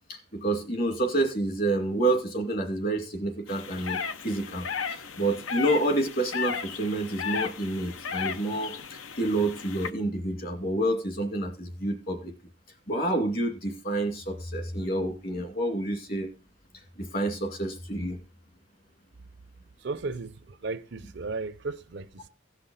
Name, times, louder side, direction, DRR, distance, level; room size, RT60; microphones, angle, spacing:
voice 1, 0.1-4.6 4.9-12.3 12.9-16.3 17.0-18.2, right 1 dB, 45° left, 2.3 m, -28 dB
sound 1, 3.5-9.9, left 6 dB, 75° left, 0.8 m, -35 dB
voice 2, 19.8-22.3, right 3 dB, 55° right, 0.5 m, -35 dB
16.5 x 5.8 x 3.9 m
head